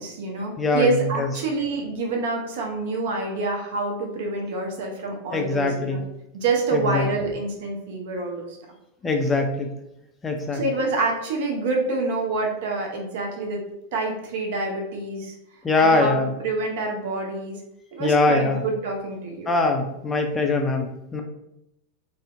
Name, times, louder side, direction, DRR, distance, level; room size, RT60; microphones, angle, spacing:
voice 1, 0.0-6.0 6.3-8.6 10.5-13.6 13.9-15.3 15.8-17.6 17.9-19.5, right 3 dB, 55° right, 1 dB, 0.5 m, -27 dB
voice 2, 0.6-1.3 5.3-6.0 6.7-7.1 9.0-9.7 10.2-10.6 15.6-16.3 18.0-18.6 19.5-21.2, left 3 dB, 15° left, 3 dB, 0.4 m, -22 dB
2.5 x 2.0 x 2.5 m, 0.85 s
figure-of-eight pair, 90°, 0 cm